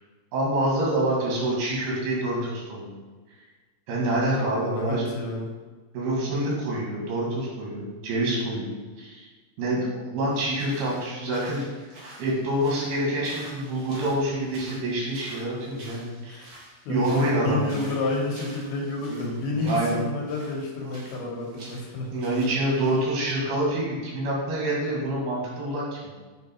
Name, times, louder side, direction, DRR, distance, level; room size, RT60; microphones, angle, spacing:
voice 1, 0.3-2.9 3.9-5.0 5.9-9.3 9.6-11.9 12.2-16.4 16.9-17.7 19.1-20.0 20.8-20.9 22.1-26.1, right 1 dB, 90° right, -3 dB, 3.7 m, -27 dB
voice 2, 4.4-5.5 16.3-16.5 16.9-22.1, left 2 dB, 80° left, -1 dB, 3.0 m, -30 dB
sound 1, 10.3-23.1, right 1 dB, 50° right, 2.7 m, -48 dB
8.2 x 3.4 x 4.3 m, 1.4 s
omnidirectional pair, 4.4 m